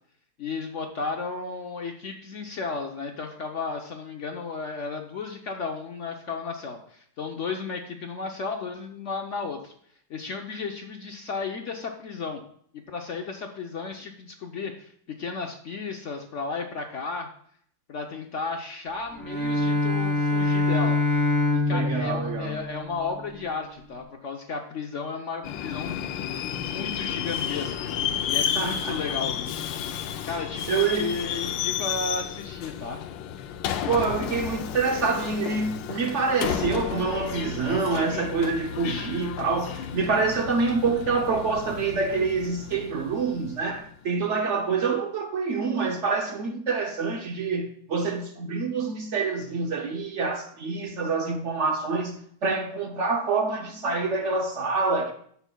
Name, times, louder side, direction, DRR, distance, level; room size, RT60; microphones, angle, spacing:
voice 1, 0.4-9.7 10.1-12.4 12.9-17.3 17.9-21.0 21.5-26.0 26.6-27.9 28.2-29.6 30.3-33.0, left 4 dB, 65° left, 0.7 m, -34 dB
Bowed string instrument, 19.1-23.3, left 2 dB, 25° right, 2.9 m, -25 dB
voice 2, 21.7-22.6 28.5-29.2 30.7-31.1 33.9-52.2 52.4-55.1, right 4 dB, 60° right, 0.8 m, -26 dB
Subway metro underground, 25.4-43.9, left 9 dB, 80° left, 1.3 m, -32 dB
15.0 x 5.7 x 2.2 m
omnidirectional pair, 2.0 m